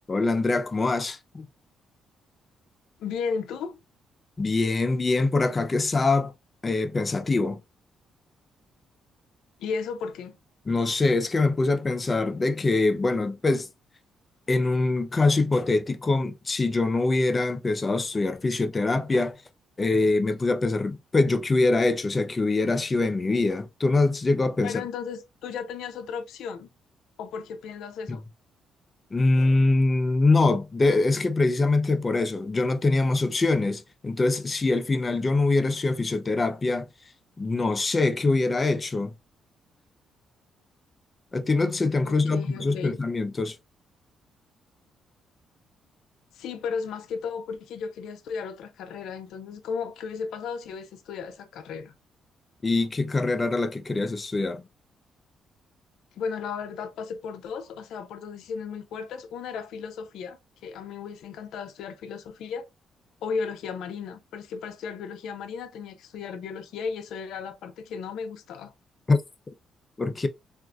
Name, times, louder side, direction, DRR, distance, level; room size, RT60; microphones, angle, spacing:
voice 1, 0.1-1.5 4.4-6.3 6.6-7.6 10.7-13.7 14.5-19.4 19.8-24.7 28.1-28.2 29.1-36.9 37.4-39.1 41.3-43.6 52.6-54.6 69.1-69.2 70.0-70.3, left 3 dB, 30° left, 0.5 m, -24 dB
voice 2, 3.0-3.8 9.6-10.4 24.6-26.7 27.2-28.2 42.1-43.0 46.3-51.9 56.2-62.7 63.2-68.7, left 5 dB, 80° left, 0.4 m, -35 dB
3.5 x 2.4 x 2.4 m
cardioid pair, 90°, 0 cm